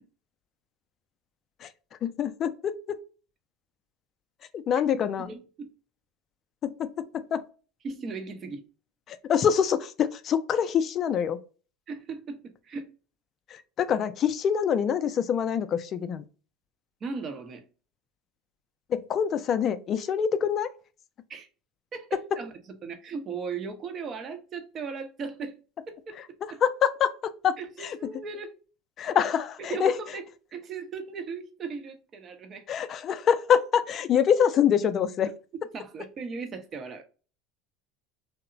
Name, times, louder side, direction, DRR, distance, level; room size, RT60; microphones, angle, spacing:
voice 1, 2.0-2.8 4.5-5.3 6.6-7.0 7.3-7.4 9.1-11.4 13.5-16.2 18.9-20.7 26.6-27.6 27.8-28.0 29.0-30.0 32.7-35.3, left 8 dB, 45° left, 0.3 m, -25 dB
voice 2, 4.9-5.7 7.8-8.6 11.9-12.9 17.0-17.6 21.3-21.5 21.9-22.1 22.4-22.5 22.8-25.6 25.9-26.6 27.6-28.6 29.7-30.2 30.5-32.7 35.5-37.0, right 5 dB, 40° right, 0.6 m, -37 dB
2.8 x 2.0 x 2.5 m
hypercardioid pair, 85°, 0 cm